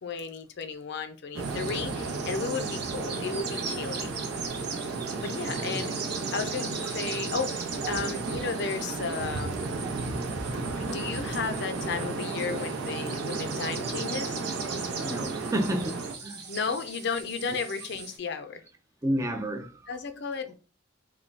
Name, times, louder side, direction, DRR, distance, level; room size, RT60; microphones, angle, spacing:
voice 1, 0.0-4.1 5.2-5.9 6.3-9.6 10.8-14.4 16.5-18.6 19.9-20.5, left 5 dB, 55° left, 0.4 m, -34 dB
sound 1, 1.3-16.1, right 3 dB, 85° right, 0.6 m, -33 dB
sound 2, 1.4-18.2, right 5 dB, 50° right, 0.8 m, -40 dB
voice 2, 5.5-5.8 9.8-9.9 10.9-11.0 15.0-16.4 19.0-19.7, right 1 dB, 15° right, 0.4 m, -31 dB
3.4 x 2.2 x 3.9 m
head